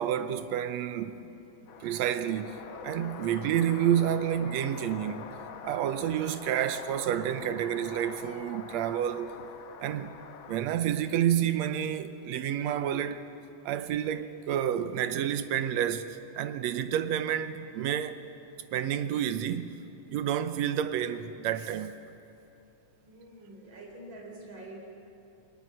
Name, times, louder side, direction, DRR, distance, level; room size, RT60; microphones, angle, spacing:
voice 1, 0.0-1.3 1.8-5.3 5.6-9.3 9.8-10.1 10.5-13.2 13.7-18.2 18.7-19.8 20.1-22.0, right 10 dB, 70° right, 1.9 m, -29 dB
sound 1, 1.7-10.6, left 7 dB, 70° left, 1.2 m, -44 dB
voice 2, 23.0-24.9, right 1 dB, 40° right, 4.8 m, -46 dB
21.5 x 20.0 x 7.8 m
omnidirectional pair, 3.4 m